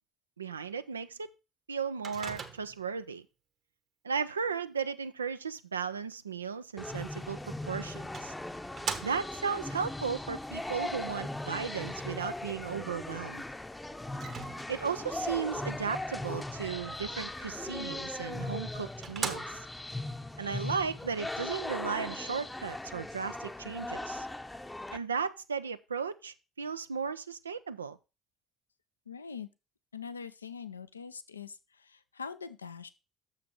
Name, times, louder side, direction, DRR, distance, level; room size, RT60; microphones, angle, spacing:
voice 1, 0.4-1.3 1.7-3.3 4.0-8.3 9.0-13.4 14.7-19.7 20.4-24.3 24.9-28.0, right 6 dB, 85° right, 0.4 m, -35 dB
Microwave oven, 2.0-2.9 7.3-7.4 8.1-9.5 14.1-15.0 18.1-18.2 18.7-18.8 19.0-19.9, right 6 dB, 45° right, 1.2 m, -39 dB
sound 1, 6.8-25.0, left 2 dB, 10° left, 0.7 m, -39 dB
voice 2, 29.1-29.5 29.9-32.9, left 6 dB, 85° left, 0.4 m, -43 dB
6.8 x 5.6 x 5.9 m
figure-of-eight pair, 55°, 0 cm